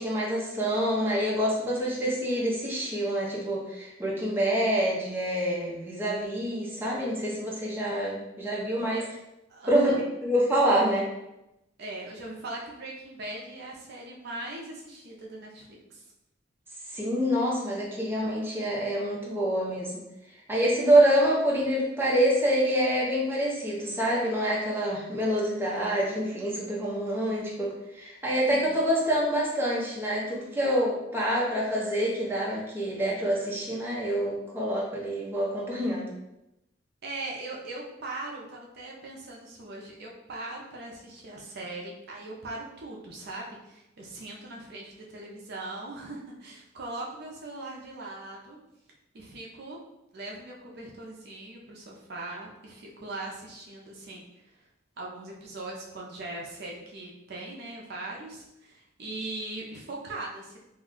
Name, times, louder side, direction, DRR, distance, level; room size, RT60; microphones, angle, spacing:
voice 1, 0.0-9.0 9.7-11.1 16.9-20.0 20.5-36.1, right 1 dB, 10° right, -5 dB, 0.6 m, -26 dB
voice 2, 9.5-10.0 11.8-16.0 28.5-28.9 37.0-48.6 49.1-49.8 50.1-54.6 55.0-60.6, right 2 dB, 55° right, -2 dB, 0.5 m, -40 dB
2.4 x 2.2 x 3.6 m, 0.89 s
head